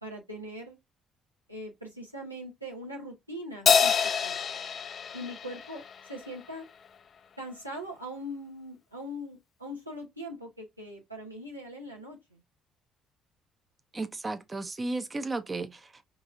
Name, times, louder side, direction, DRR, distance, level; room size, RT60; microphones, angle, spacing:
voice 1, 0.0-0.8 1.5-4.4 5.1-6.7 7.4-12.4, equal, 90° right, 0.8 m, -41 dB
Crash cymbal, 3.7-6.3, left 7 dB, 45° left, 0.4 m, -26 dB
voice 2, 13.9-16.1, right 2 dB, 25° right, 0.6 m, -34 dB
3.9 x 2.8 x 2.5 m
figure-of-eight pair, 50°, 0 cm